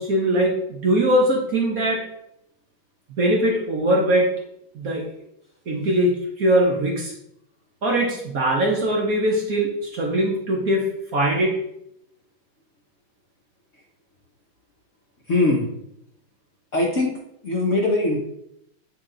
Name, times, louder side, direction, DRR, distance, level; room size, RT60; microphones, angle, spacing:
voice 1, 0.0-2.0 3.2-4.3 4.7-5.1 5.7-7.1 7.8-10.9 11.1-11.6, right 1 dB, 55° right, -1 dB, 1.2 m, -21 dB
voice 2, 15.3-15.6 16.7-17.2 17.4-18.2, left 2 dB, 50° left, -2 dB, 1.0 m, -21 dB
8.6 x 2.9 x 3.8 m, 0.78 s
omnidirectional pair, 2.2 m